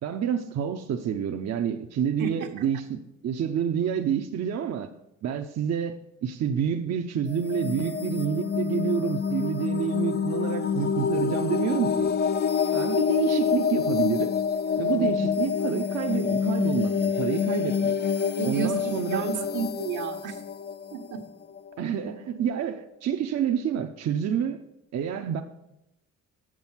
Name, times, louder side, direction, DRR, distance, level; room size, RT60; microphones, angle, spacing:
voice 1, 0.0-4.9 5.2-12.1 12.7-14.3 14.8-17.9 18.4-19.5 21.8-24.6 24.9-25.4, right 8 dB, 60° right, 0.7 m, -28 dB
sound 1, 7.3-22.0, left 6 dB, 35° left, 0.4 m, -27 dB
voice 2, 18.4-20.4 20.9-21.2, right 6 dB, 80° right, 1.3 m, -31 dB
7.9 x 6.1 x 7.2 m
cardioid pair, 90°, 30 cm